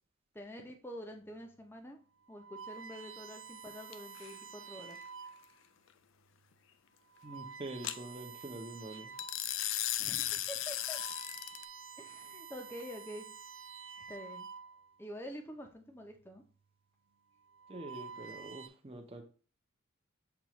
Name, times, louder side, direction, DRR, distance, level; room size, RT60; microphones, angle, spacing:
voice 1, 0.3-2.0 2.3-5.0 10.0-11.0 12.0-13.3 14.1-14.5 15.0-16.4, equal, 10° left, 3 dB, 0.6 m, -47 dB
sound 1, 1.3-1.6 2.2-5.6 6.3-6.5 7.1-9.5 10.0-10.1 10.6-15.1 16.1-16.5 17.4-18.7, right 6 dB, 60° right, 0.4 m, -49 dB
sound 2, 3.9-4.3 7.8-8.0 9.2-11.6, left 12 dB, 60° left, 0.3 m, -36 dB
voice 2, 7.2-9.1 17.7-19.2, right 2 dB, 25° right, 3 dB, 0.7 m, -45 dB
6.9 x 2.4 x 3.0 m, 0.39 s
head